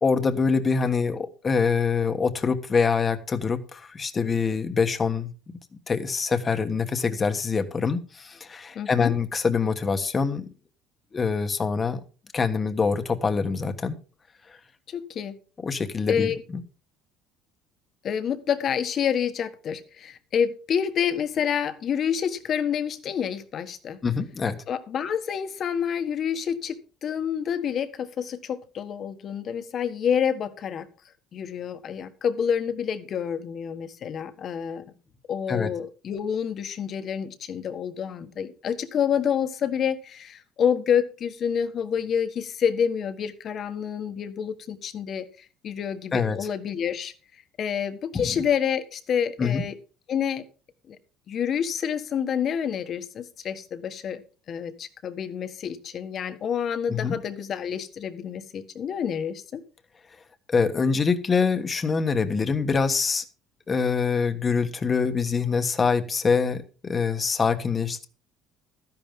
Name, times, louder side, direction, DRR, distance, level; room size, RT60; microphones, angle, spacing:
voice 1, 0.0-5.3 5.9-10.5 11.1-12.0 12.3-14.0 15.6-16.6 24.0-24.6 35.5-35.7 46.1-46.4 48.1-48.4 49.4-49.6 56.9-57.1 60.5-63.2 63.7-68.1, left 5 dB, 20° left, 9 dB, 1.3 m, -25 dB
voice 2, 8.7-9.1 14.9-15.4 16.1-16.4 18.0-24.0 24.7-26.8 27.0-30.9 31.3-34.9 35.3-45.3 45.6-47.1 47.6-49.7 50.1-50.4 50.9-51.0 51.3-54.2 54.5-59.6, left 8 dB, 40° left, 10 dB, 1.4 m, -28 dB
13.0 x 10.5 x 3.7 m, 0.35 s
cardioid pair, 150°, 0 cm